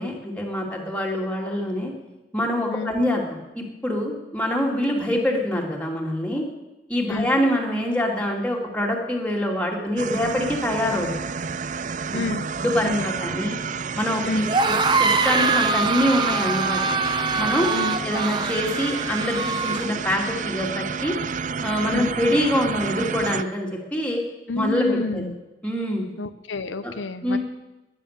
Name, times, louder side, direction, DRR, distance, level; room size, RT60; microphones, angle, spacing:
voice 1, 0.0-1.9 2.3-6.4 6.9-11.2 12.1-12.2 12.6-13.6 14.0-17.0 17.4-21.1 21.6-24.2 24.5-25.2 25.6-26.0 26.8-26.9 27.2-27.4, left 1 dB, 5° left, -1 dB, 2.8 m, -25 dB
sound 1, 10.0-23.4, right 5 dB, 40° right, 0.5 m, -30 dB
voice 2, 12.1-12.5 12.8-13.0 14.2-14.5 17.7-18.0 21.9-22.1 24.5-25.4 26.2-27.4, left 3 dB, 90° left, 10 dB, 0.9 m, -29 dB
sound 2, 14.4-19.9, right 4 dB, 25° right, 0.9 m, -24 dB
20.0 x 10.5 x 6.8 m, 1.0 s
head